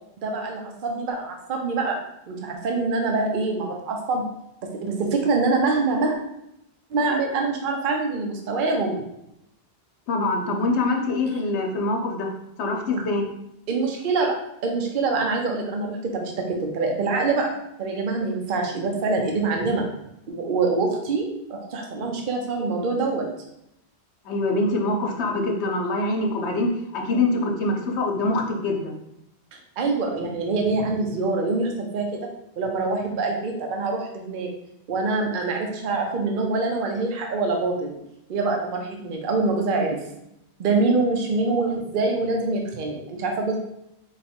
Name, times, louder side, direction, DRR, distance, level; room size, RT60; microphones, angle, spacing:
voice 1, 0.2-2.0 2.3-4.2 4.8-6.2 6.9-9.0 13.7-14.3 14.6-17.5 17.8-19.9 20.3-23.2 29.8-32.2 32.6-34.5 34.9-37.9 38.3-40.0 40.6-43.6, right 3 dB, 55° right, 1 dB, 0.8 m, -25 dB
voice 2, 10.1-12.3 12.6-13.3 24.2-29.0, left 2 dB, 90° left, 2 dB, 1.1 m, -24 dB
4.2 x 2.3 x 4.3 m, 0.81 s
omnidirectional pair, 1.1 m